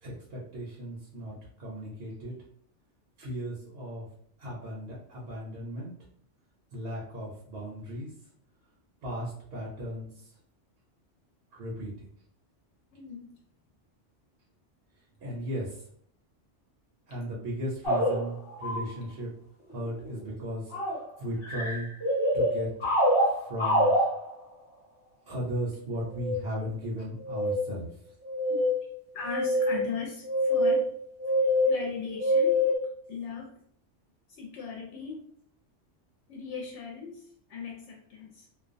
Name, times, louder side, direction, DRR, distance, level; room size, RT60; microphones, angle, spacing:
voice 1, 0.0-2.3 3.2-4.0 4.4-5.9 6.7-8.1 9.0-10.3 11.5-12.1 15.2-15.8 17.1-19.3 19.7-20.7 21.2-21.9 22.3-22.7 23.2-23.9 25.3-27.9, equal, 65° right, -5 dB, 0.9 m, -36 dB
voice 2, 12.9-13.3 28.5-28.6 29.1-30.9 31.7-32.6 33.1-33.5 34.3-35.3 36.3-38.5, left 5 dB, 75° left, -1 dB, 0.9 m, -38 dB
sound 1, 17.8-18.9 19.7-20.3 20.7-21.0 21.4-24.4 26.1-26.4 27.2-27.8 28.2-28.9 29.2-32.8, equal, 30° left, 0.8 m, -26 dB
2.4 x 2.1 x 2.5 m, 0.63 s
omnidirectional pair, 1.2 m